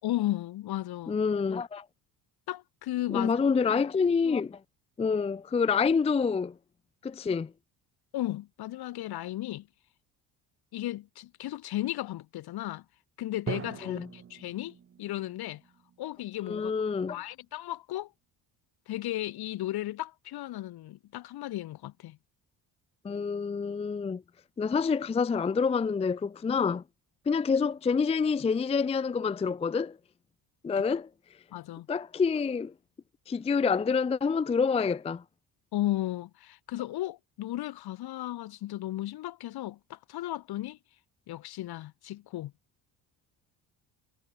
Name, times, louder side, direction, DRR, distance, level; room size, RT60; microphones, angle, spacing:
voice 1, 0.0-1.2 2.5-3.3 8.1-9.7 10.7-12.8 13.2-15.6 16.0-16.7 17.1-18.1 18.9-22.2 31.5-31.9 35.7-40.8 41.3-42.5, left 15 dB, 65° left, 4.4 m, -35 dB
voice 2, 1.1-1.8 3.1-4.6 5.0-6.5 7.0-7.5 13.8-14.1 16.5-17.2 23.0-24.2 24.6-26.8 27.3-30.0 30.6-31.1 31.9-32.7 33.3-35.2, left 5 dB, 15° left, 0.5 m, -27 dB
Drum, 13.5-17.2, right 8 dB, 30° right, 2.2 m, -43 dB
cardioid pair, 155°, 40 cm